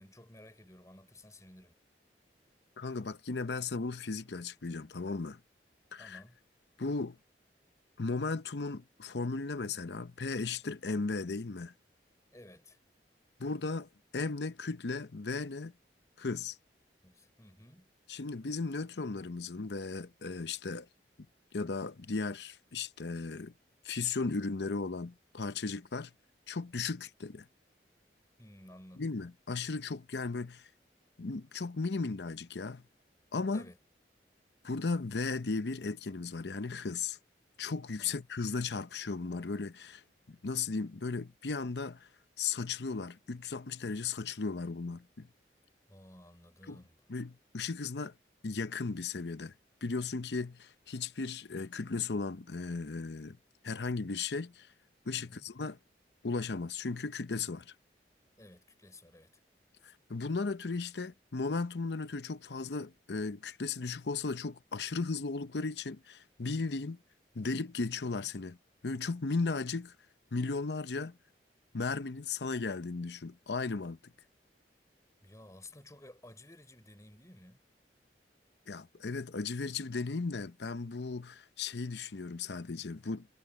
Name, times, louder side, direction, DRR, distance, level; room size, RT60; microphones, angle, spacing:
voice 1, 0.0-1.8 6.0-6.4 12.3-12.8 17.0-17.9 28.4-29.1 33.5-33.8 38.0-38.2 45.9-47.0 55.2-55.5 58.4-59.4 75.2-77.6, left 1 dB, 20° left, 3.9 m, -55 dB
voice 2, 2.8-5.4 5.9-6.2 6.8-7.2 8.0-11.7 13.4-15.7 16.2-16.6 18.1-20.9 21.5-23.5 23.8-26.1 26.5-27.5 29.0-30.7 31.2-32.8 33.3-33.7 34.6-37.2 37.6-40.0 40.3-42.1 42.4-45.3 46.7-46.8 47.1-48.1 48.4-49.5 49.8-53.4 53.6-54.7 55.1-55.8 56.2-57.7 59.8-67.0 67.3-68.6 68.8-69.9 70.3-71.2 71.7-74.0 78.7-83.3, left 4 dB, 75° left, 0.8 m, -36 dB
head